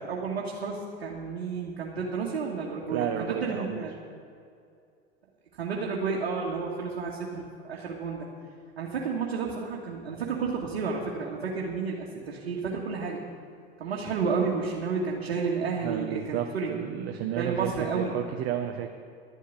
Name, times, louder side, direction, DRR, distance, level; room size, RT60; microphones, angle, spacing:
voice 1, 0.0-3.9 5.6-8.3 8.8-13.2 13.8-16.7 17.4-18.1, right 5 dB, 80° right, -3 dB, 2.0 m, -31 dB
voice 2, 2.9-3.8 15.8-18.9, right 10 dB, 50° right, 4 dB, 1.1 m, -32 dB
12.0 x 8.3 x 9.7 m, 2.4 s
hypercardioid pair, 90°, 30 cm